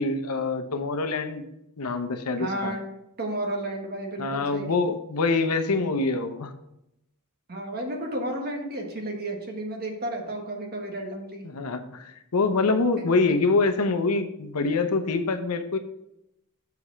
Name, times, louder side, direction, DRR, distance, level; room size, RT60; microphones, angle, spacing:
voice 1, 0.0-1.4 1.8-2.7 4.2-6.5 11.4-15.8, left 3 dB, 85° left, 8 dB, 0.8 m, -25 dB
voice 2, 2.4-2.8 3.2-4.7 7.5-11.4, right 1 dB, 45° right, 2 dB, 1.5 m, -32 dB
6.9 x 5.0 x 5.6 m, 0.84 s
head